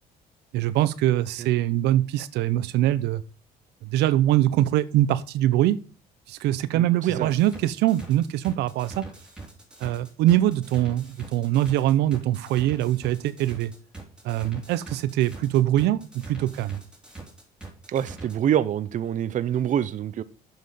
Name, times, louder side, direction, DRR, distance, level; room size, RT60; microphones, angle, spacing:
voice 1, 0.5-3.2 3.8-5.8 6.3-9.1 9.8-13.7 14.2-16.8, right 13 dB, 85° right, 15 dB, 0.7 m, -23 dB
sound 1, 7.2-18.3, right 3 dB, 5° right, 3.1 m, -42 dB
voice 2, 17.9-20.2, right 10 dB, 50° right, 14 dB, 0.7 m, -25 dB
7.6 x 6.1 x 6.8 m, 0.37 s
cardioid pair, 110°, 17 cm